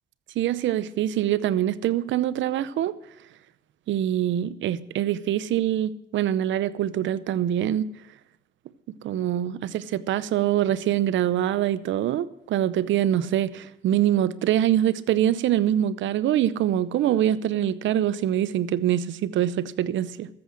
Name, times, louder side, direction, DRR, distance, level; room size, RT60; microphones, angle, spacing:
voice 1, 0.4-3.0 3.9-7.9 9.0-20.3, right 11 dB, 85° right, 17 dB, 0.7 m, -24 dB
13.5 x 8.6 x 7.8 m, 0.86 s
supercardioid pair, 60°, 19 cm